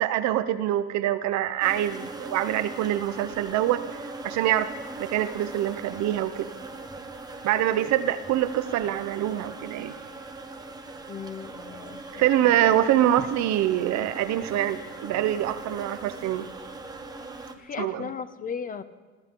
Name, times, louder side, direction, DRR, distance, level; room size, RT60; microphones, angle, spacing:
voice 1, 0.0-4.7 5.0-6.5 7.4-9.9 12.1-16.5 17.8-18.1, right 12 dB, 65° right, 12 dB, 0.9 m, -25 dB
sound 1, 1.6-17.5, right 3 dB, 15° right, 1.0 m, -40 dB
voice 2, 11.1-12.2 12.6-12.7 13.2-13.3 17.6-18.8, left 6 dB, 25° left, 13 dB, 0.7 m, -36 dB
23.5 x 14.5 x 3.8 m, 1.3 s
cardioid pair, 145°, 31 cm